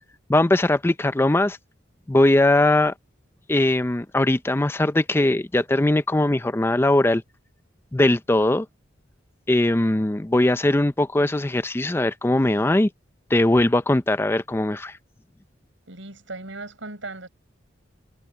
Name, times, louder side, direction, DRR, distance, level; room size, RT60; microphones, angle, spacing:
voice 1, 0.3-1.6 2.1-2.9 3.5-7.2 7.9-8.7 9.5-12.9 13.3-15.0, left 1 dB, 10° left, 0.4 m, -20 dB
voice 2, 15.9-17.3, right 2 dB, 85° right, 5.7 m, -37 dB
head